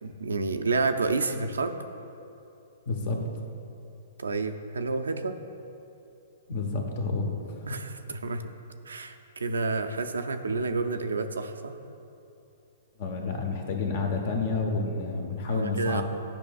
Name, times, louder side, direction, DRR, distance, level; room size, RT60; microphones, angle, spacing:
voice 1, 0.0-1.8 4.2-5.4 7.7-8.4 8.9-11.7 15.5-16.0, right 3 dB, 90° right, 7 dB, 0.4 m, -29 dB
voice 2, 2.9-3.3 6.5-7.6 13.0-16.0, left 3 dB, 55° left, 3 dB, 0.9 m, -29 dB
10.0 x 5.4 x 2.4 m, 2.8 s
hypercardioid pair, 125°, 0 cm